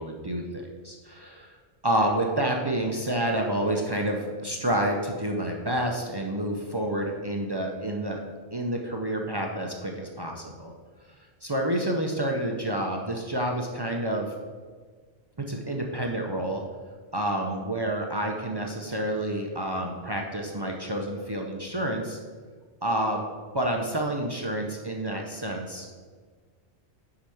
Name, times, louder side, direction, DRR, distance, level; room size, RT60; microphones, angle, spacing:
voice 1, 0.0-1.6 1.8-8.2 8.5-10.7 11.4-14.3 15.4-16.6 17.1-22.2 22.8-23.2 23.5-25.9, right 1 dB, 30° right, 1 dB, 0.5 m, -29 dB
6.2 x 4.9 x 5.7 m, 1.5 s
omnidirectional pair, 1.1 m